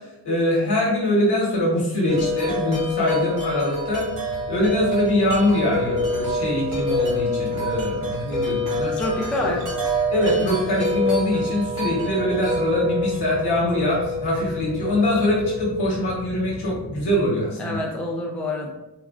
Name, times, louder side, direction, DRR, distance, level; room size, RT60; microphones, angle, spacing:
voice 1, 0.0-4.1 4.5-9.0 9.4-9.5 10.1-17.8, left 1 dB, 65° left, -3 dB, 1.2 m, -23 dB
Wind chime, 2.1-16.0, left 1 dB, 90° right, 1.5 m, -27 dB
sound 1, 3.9-17.2, right 2 dB, 20° right, 0.9 m, -39 dB
voice 2, 8.9-9.6 17.6-18.7, left 1 dB, 5° left, -1 dB, 0.4 m, -27 dB
3.2 x 2.4 x 2.4 m, 0.95 s
cardioid pair, 90°, 42 cm